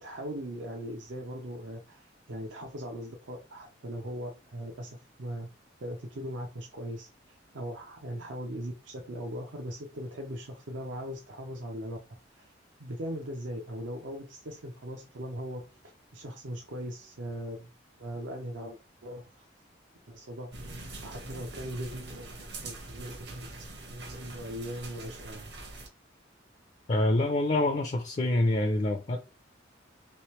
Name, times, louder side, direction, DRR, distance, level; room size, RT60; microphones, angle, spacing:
voice 1, 0.0-5.5 5.8-12.0 12.3-12.5 12.8-17.7 18.0-19.5 20.1-20.5 21.0-25.5, equal, 80° right, 0.6 m, -39 dB
sound 1, 20.5-25.9, right 2 dB, 60° right, 0.9 m, -43 dB
voice 2, 26.9-29.2, left 1 dB, 35° left, 0.4 m, -26 dB
3.2 x 3.0 x 3.1 m
head